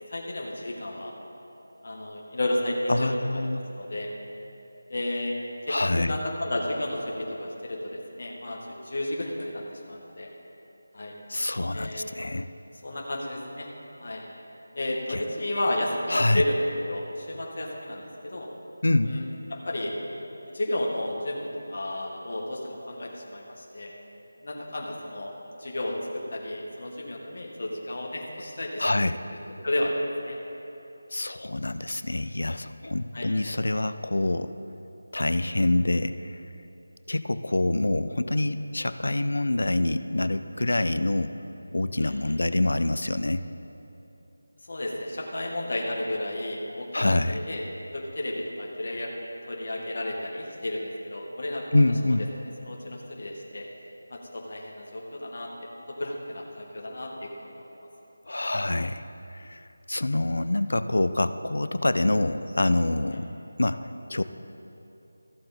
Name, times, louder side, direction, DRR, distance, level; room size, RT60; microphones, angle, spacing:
voice 1, 0.1-1.1 1.8-3.4 3.7-4.1 4.9-5.3 5.7-10.3 10.9-11.1 11.7-12.0 12.8-13.7 14.0-14.2 14.7-18.5 19.0-19.2 19.5-20.0 20.5-23.9 24.4-25.3 25.6-28.9 29.6-29.9 30.3-30.4 33.1-33.3 42.0-42.4 44.7-47.6 47.9-49.1 49.4-51.8 52.6-53.7 54.1-57.5 63.1-63.2, left 1 dB, 45° left, -1 dB, 1.4 m, -32 dB
voice 2, 2.9-3.6 5.7-6.2 11.3-12.5 15.1-15.2 16.1-16.4 18.8-19.1 28.8-29.2 31.1-34.5 35.1-36.4 37.1-41.3 41.7-43.4 46.9-47.4 51.7-52.3 58.3-59.0 59.3-64.2, left 2 dB, 80° left, 12 dB, 0.4 m, -26 dB
14.5 x 7.6 x 4.1 m, 2.9 s
figure-of-eight pair, 175°, 0 cm